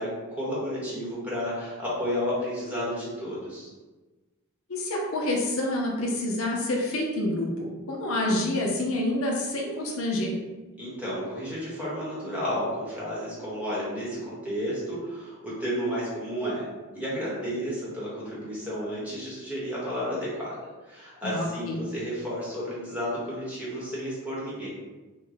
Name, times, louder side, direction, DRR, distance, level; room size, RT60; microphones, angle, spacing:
voice 1, 0.0-3.7 10.8-16.7 16.9-24.7, equal, 5° right, -8 dB, 1.0 m, -32 dB
voice 2, 4.7-10.3 21.2-21.8, left 1 dB, 65° left, -1 dB, 0.6 m, -28 dB
3.0 x 2.1 x 3.8 m, 1.2 s
head